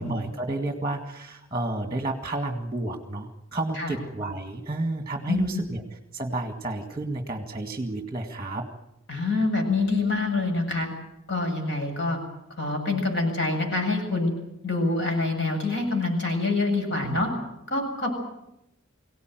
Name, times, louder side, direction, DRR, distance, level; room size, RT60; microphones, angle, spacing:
voice 1, 0.0-8.7 17.1-17.2, right 2 dB, 20° right, 4 dB, 2.0 m, -31 dB
voice 2, 5.3-5.6 9.1-10.9 11.3-12.2 12.6-14.3 14.6-17.3 17.7-18.1, left 3 dB, 55° left, 3 dB, 7.8 m, -26 dB
24.5 x 17.5 x 9.3 m, 0.84 s
head